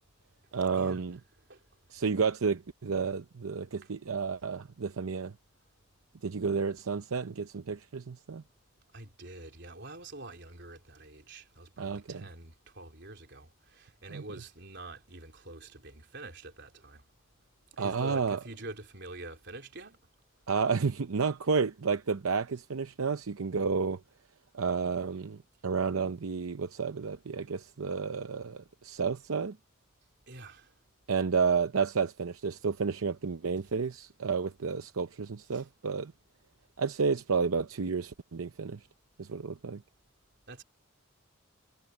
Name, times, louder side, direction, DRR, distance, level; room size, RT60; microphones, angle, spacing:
voice 1, 0.5-1.2 1.9-5.3 6.2-8.4 11.8-12.2 14.1-14.2 17.8-18.4 20.5-24.0 24.5-29.6 31.1-36.1 36.8-38.9 39.2-39.8, right 5 dB, 80° right, 0.7 m, -31 dB
voice 2, 8.9-17.0 17.7-20.0 30.3-30.7 35.5-35.7 40.5-40.6, right 2 dB, 50° right, 3.8 m, -46 dB
head